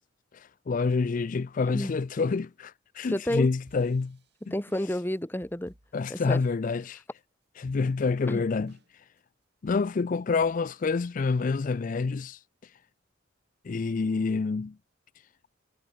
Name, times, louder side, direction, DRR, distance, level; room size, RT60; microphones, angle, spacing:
voice 1, 0.3-4.2 4.5-4.6 5.9-7.0 7.6-9.0 9.6-12.7 13.6-14.8, left 4 dB, 45° left, 0.4 m, -28 dB
voice 2, 3.1-3.5 4.5-5.7 6.1-6.4 8.3-8.4, left 1 dB, 10° left, 1.2 m, -30 dB
sound 1, 3.7-6.9 7.2-7.3 7.7-8.2 8.7-9.2 9.7-11.4, right 1 dB, 60° right, 5.7 m, -59 dB
head